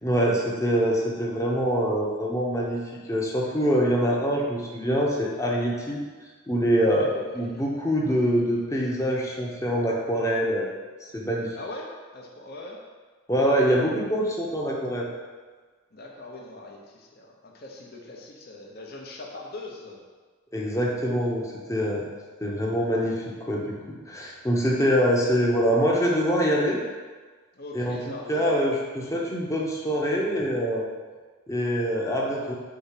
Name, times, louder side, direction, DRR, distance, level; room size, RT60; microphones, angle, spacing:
voice 1, 0.0-2.8 3.1-6.0 6.5-10.7 11.1-11.6 13.3-15.1 20.5-22.1 22.4-26.8 27.7-28.0 28.3-30.9 31.5-32.5, equal, 15° left, -3 dB, 0.9 m, -24 dB
voice 2, 7.2-7.7 11.5-12.8 15.9-20.0 27.5-28.6, left 2 dB, 50° left, -1 dB, 0.9 m, -41 dB
4.9 x 4.0 x 5.8 m, 1.4 s
head